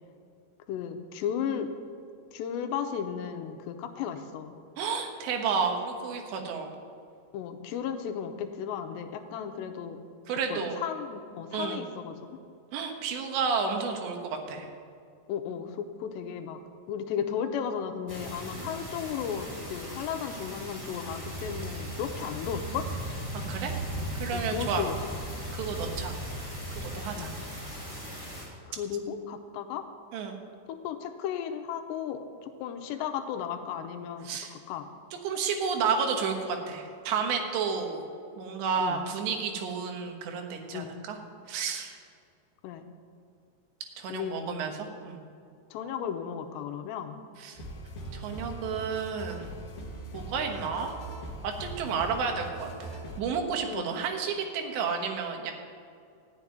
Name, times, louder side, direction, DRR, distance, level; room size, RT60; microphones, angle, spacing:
voice 1, 0.7-1.7 2.3-4.6 7.3-10.0 10.5-12.2 15.3-16.6 16.9-22.9 24.3-25.0 27.2-27.3 28.7-29.9 30.7-34.9 38.8-39.0 40.7-41.0 42.6-42.9 44.1-44.5 45.7-47.1 53.7-53.8, left 8 dB, 80° left, 7 dB, 3.0 m, -34 dB
voice 2, 4.8-6.7 10.3-10.8 11.5-11.8 12.7-14.7 23.3-23.8 24.2-24.9 25.5-26.1 26.8-27.3 30.1-30.4 34.3-34.5 35.2-38.0 38.4-41.2 41.5-42.0 44.0-45.2 47.4-47.6 48.1-49.6 50.1-50.9 51.4-55.5, right 5 dB, 80° right, 3 dB, 3.6 m, -31 dB
sound 1, 18.1-28.4, right 1 dB, 5° right, 3.4 m, -37 dB
sound 2, 47.5-53.2, right 1 dB, 65° left, 1.3 m, -41 dB
13.5 x 7.5 x 9.6 m, 2.4 s
omnidirectional pair, 5.1 m